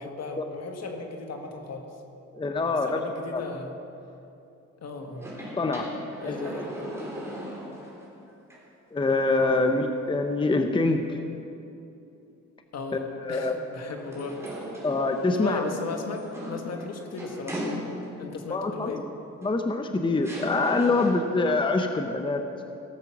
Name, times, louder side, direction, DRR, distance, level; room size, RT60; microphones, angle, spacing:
voice 1, 0.0-1.9 2.6-3.8 4.8-5.3 6.2-6.7 9.6-9.7 12.7-14.4 15.3-17.6 18.2-19.1, left 3 dB, 60° left, 4 dB, 1.7 m, -36 dB
voice 2, 2.3-3.0 3.3-3.4 5.6-5.9 6.2-6.4 8.9-11.2 13.2-13.6 14.8-15.6 18.5-18.9 19.4-22.4, left 3 dB, 15° left, 6 dB, 0.7 m, -25 dB
sound 1, 5.1-8.1 8.5-8.6 14.0-18.3 19.4-19.5 20.2-21.4, equal, 10° right, 3.5 m, -37 dB
17.0 x 7.4 x 6.0 m, 2.8 s
cardioid pair, 90°, 30 cm